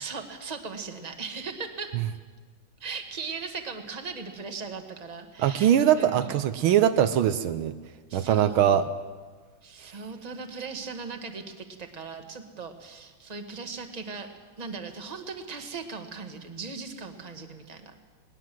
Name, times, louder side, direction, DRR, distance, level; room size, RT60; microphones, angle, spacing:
voice 1, 0.0-1.9 2.8-6.3 8.1-8.8 9.6-14.3 14.6-18.0, right 4 dB, 20° right, 5 dB, 1.5 m, -38 dB
voice 2, 5.4-7.7 8.1-8.9, right 10 dB, 75° right, 11 dB, 1.6 m, -22 dB
20.0 x 19.5 x 7.6 m, 1.4 s
omnidirectional pair, 2.3 m